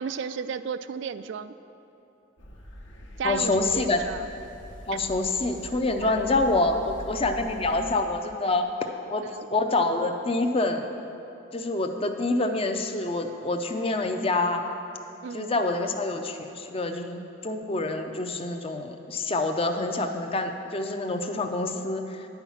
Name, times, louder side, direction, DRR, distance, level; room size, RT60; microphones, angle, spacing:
voice 1, 0.0-1.5 3.2-4.3 4.9-5.0 6.0-6.4 9.3-9.5 15.2-15.5, right 6 dB, 65° right, 13 dB, 0.3 m, -34 dB
sound 1, 2.4-7.9, equal, 65° left, 1.1 m, -43 dB
voice 2, 3.2-4.0 4.9-8.7 9.1-10.9 11.5-14.7 15.3-22.3, left 2 dB, 30° left, 6 dB, 0.5 m, -26 dB
9.8 x 5.8 x 7.1 m, 2.9 s
head